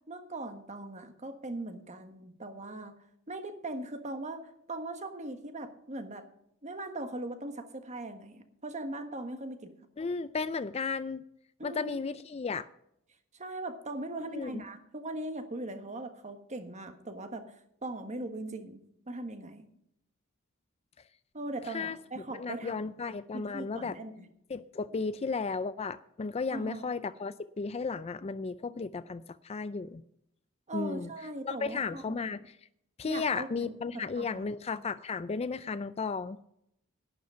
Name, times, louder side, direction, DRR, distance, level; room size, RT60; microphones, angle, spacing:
voice 1, 0.1-3.0 3.3-6.2 6.6-9.7 11.6-12.0 13.3-17.5 17.8-19.6 21.3-23.0 23.3-24.3 26.5-26.9 30.7-32.2 33.1-34.5, right 2 dB, 30° right, 7 dB, 1.5 m, -40 dB
voice 2, 10.0-11.2 11.6-12.7 14.3-14.6 21.7-22.0 22.3-24.0 24.5-30.0 30.7-31.1 31.4-32.6 33.0-36.4, left 4 dB, 30° left, 14 dB, 0.4 m, -34 dB
11.5 x 10.5 x 5.6 m, 0.74 s
head